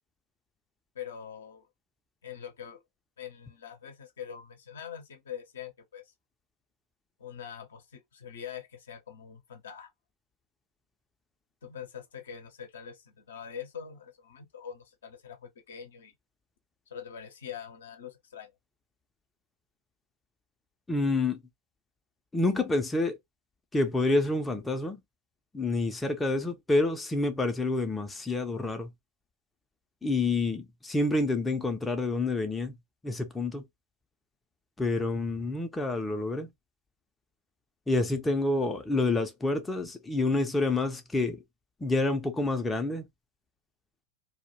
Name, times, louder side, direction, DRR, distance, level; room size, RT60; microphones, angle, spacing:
voice 1, 0.9-1.7 2.2-2.8 3.2-6.1 7.2-9.9 11.6-16.1 16.9-18.5, left 8 dB, 65° left, 0.5 m, -44 dB
voice 2, 20.9-21.4 22.3-23.2 23.7-25.0 25.5-28.9 30.0-32.7 33.0-33.6 34.8-36.5 37.9-41.4 41.8-43.0, left 2 dB, 10° left, 0.4 m, -28 dB
2.2 x 2.0 x 2.9 m
figure-of-eight pair, 90°, 0 cm